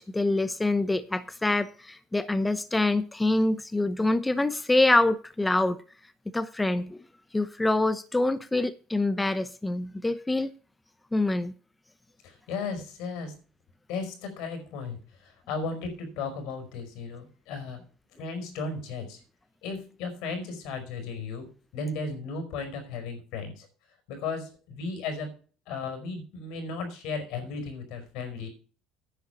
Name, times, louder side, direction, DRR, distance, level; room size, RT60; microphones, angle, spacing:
voice 1, 0.0-5.8 6.3-7.0 7.3-10.5 11.1-11.5, left 2 dB, 10° left, 0.8 m, -25 dB
voice 2, 12.2-13.4 13.9-17.9 18.2-19.2 19.6-23.7 24.1-25.3 25.7-28.5, left 4 dB, 80° left, 5.0 m, -35 dB
10.5 x 6.9 x 6.9 m
supercardioid pair, 95°, 0 cm